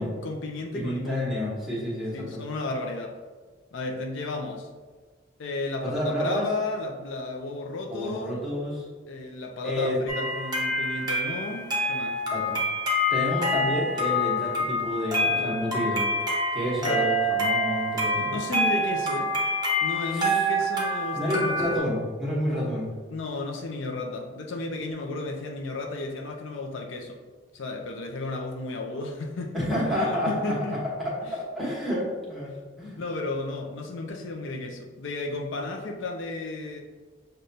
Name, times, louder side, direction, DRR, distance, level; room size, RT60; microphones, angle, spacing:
voice 1, 0.0-1.3 2.1-3.1 3.7-4.7 5.4-8.4 9.1-12.2 16.8-17.1 18.1-19.3 19.8-21.8 23.1-27.2 27.5-30.8 31.2-31.3 32.5-32.6 33.0-36.8, left 2 dB, 70° left, 2 dB, 0.4 m, -33 dB
voice 2, 0.7-2.4 5.8-6.4 7.9-8.8 9.6-10.0 12.3-12.6 13.1-16.1 16.5-18.3 20.1-20.4 21.1-22.9 29.5-32.5 32.8-33.0, equal, ahead, -6 dB, 1.0 m, -29 dB
sound 1, 10.1-21.8, left 1 dB, 20° right, 0.7 m, -26 dB
6.4 x 2.2 x 2.7 m, 1.4 s
head